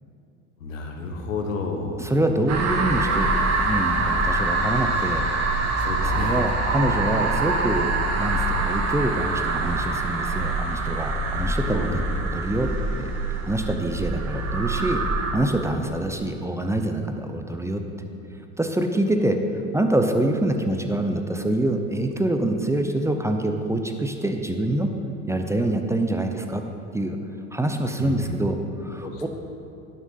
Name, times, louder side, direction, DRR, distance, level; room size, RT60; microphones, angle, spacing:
voice 1, 0.6-2.1 5.8-6.5 11.6-11.9 28.0-28.3 29.0-29.2, left 4 dB, 85° left, 3 dB, 1.3 m, -31 dB
voice 2, 2.0-5.3 6.0-12.7 13.0-13.1 13.4-15.0 15.3-17.8 18.6-19.4 19.7-24.9 25.3-26.6 26.9-27.2 27.5-29.3, right 1 dB, 5° right, 5 dB, 0.7 m, -25 dB
sound 1, 2.5-15.3, right 2 dB, 40° right, 1.8 m, -25 dB
11.0 x 6.7 x 5.5 m, 2.8 s
hypercardioid pair, 85°, 38 cm